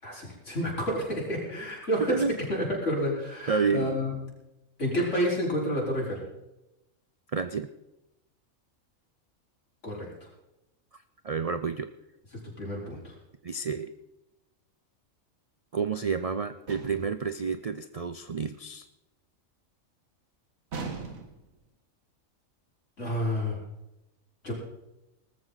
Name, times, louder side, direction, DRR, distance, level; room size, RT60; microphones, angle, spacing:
voice 1, 0.0-2.2 2.5-4.1 4.8-6.2 9.8-10.1 12.6-13.1 23.0-23.6 24.4-24.5, equal, 60° left, -3 dB, 5.2 m, -29 dB
voice 2, 3.5-3.9 7.3-7.7 11.2-11.9 13.4-13.9 15.7-18.8, right 5 dB, 65° right, 10 dB, 0.3 m, -29 dB
sound 1, 16.7-17.2 20.7-21.5, right 4 dB, 80° right, 2.0 m, -38 dB
19.0 x 14.0 x 4.0 m, 0.92 s
omnidirectional pair, 1.4 m